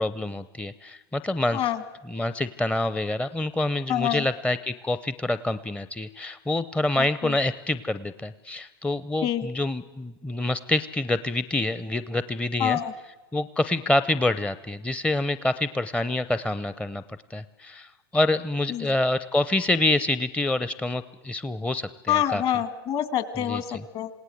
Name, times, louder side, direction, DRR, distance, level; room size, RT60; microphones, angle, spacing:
voice 1, 0.0-1.7 2.1-12.8 13.3-17.0 17.3-22.4 23.5-23.8, left 2 dB, 10° left, 13 dB, 0.7 m, -27 dB
voice 2, 1.5-1.8 3.9-4.2 7.2-7.3 9.2-9.5 12.6-12.9 18.7-18.9 22.1-24.1, left 10 dB, 45° left, 12 dB, 2.2 m, -26 dB
27.5 x 18.0 x 7.9 m, 1.1 s
hypercardioid pair, 90°, 13 cm